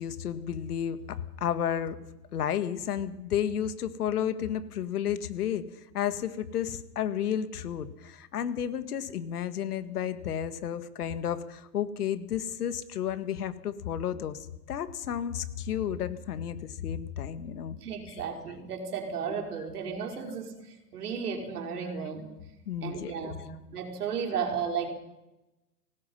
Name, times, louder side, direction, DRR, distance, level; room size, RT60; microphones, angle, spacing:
voice 1, 0.0-2.0 2.3-5.7 5.9-17.8 18.1-18.2 22.7-23.5, left 9 dB, 65° left, 12 dB, 2.0 m, -32 dB
voice 2, 17.8-22.3 22.8-23.5 23.7-24.9, right 6 dB, 65° right, 2 dB, 5.4 m, -34 dB
25.0 x 18.5 x 5.6 m, 0.97 s
hypercardioid pair, 160°, 48 cm